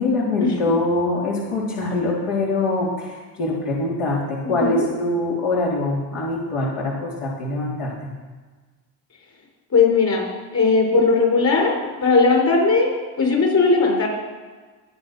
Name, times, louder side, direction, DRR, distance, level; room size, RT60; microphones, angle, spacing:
voice 1, 0.0-3.1 3.4-8.1, left 2 dB, 80° left, -5 dB, 3.6 m, -23 dB
voice 2, 4.4-4.9 9.7-11.7 12.0-12.9 13.2-14.1, left 4 dB, 40° left, 1 dB, 5.1 m, -18 dB
19.5 x 7.3 x 5.9 m, 1.4 s
supercardioid pair, 75°, 41 cm